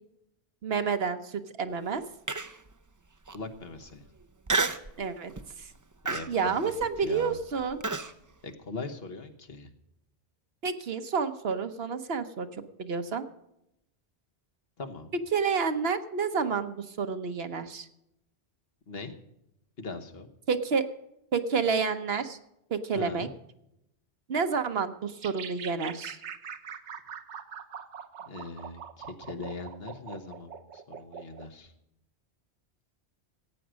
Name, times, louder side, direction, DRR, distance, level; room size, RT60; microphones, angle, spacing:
voice 1, 0.6-2.0 5.0-5.3 5.6-5.7 6.3-7.8 10.6-12.5 12.8-13.2 15.3-17.9 20.5-20.9 21.3-22.4 22.7-23.3 24.3-26.2, right 5 dB, 65° right, 9 dB, 1.1 m, -29 dB
Human voice, 2.3-2.7 3.3-3.4 4.5-4.9 5.4-5.6 6.1-8.1, right 3 dB, 25° right, 0.5 m, -30 dB
voice 2, 3.3-4.0 6.1-6.7 7.0-7.4 8.4-9.7 14.8-15.1 18.9-19.1 19.8-20.3 22.9-23.3 28.3-31.7, left 3 dB, 60° left, 7 dB, 1.4 m, -40 dB
sound 1, 25.2-31.5, right 7 dB, 90° right, 1.2 m, -42 dB
15.0 x 9.1 x 6.2 m, 0.83 s
omnidirectional pair, 1.1 m